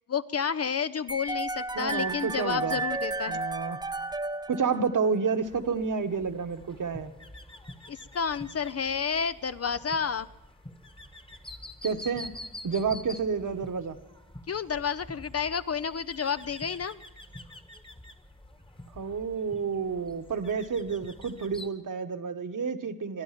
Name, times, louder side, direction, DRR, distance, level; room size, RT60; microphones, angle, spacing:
voice 1, 0.1-3.4 7.9-10.3 14.5-17.0, left 6 dB, 40° left, 13 dB, 0.5 m, -30 dB
sound 1, 1.1-5.2, right 2 dB, 10° right, 0.6 m, -33 dB
voice 2, 1.7-2.8 3.3-3.8 4.5-7.1 11.8-12.3 12.6-14.0 18.9-23.2, right 5 dB, 50° right, 8 dB, 1.3 m, -30 dB
sound 2, 5.4-21.7, left 1 dB, 15° left, 1.3 m, -47 dB
22.0 x 10.0 x 5.9 m, 0.99 s
cardioid pair, 55°, 39 cm